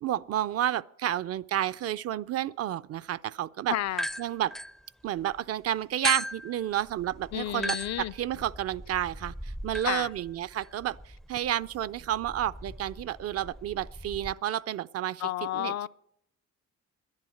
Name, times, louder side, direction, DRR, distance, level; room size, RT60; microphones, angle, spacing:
voice 1, 0.0-3.8 4.2-4.5 5.0-11.0 11.3-15.2 15.5-15.9, right 11 dB, 55° right, 0.5 m, -31 dB
voice 2, 3.7-4.0 7.3-8.1 9.8-10.1 15.2-15.9, left 13 dB, 65° left, 0.4 m, -31 dB
sound 1, 3.9-5.4 6.0-14.3, equal, ahead, 0.4 m, -38 dB
10.5 x 10.5 x 7.8 m
cardioid pair, 90°, 30 cm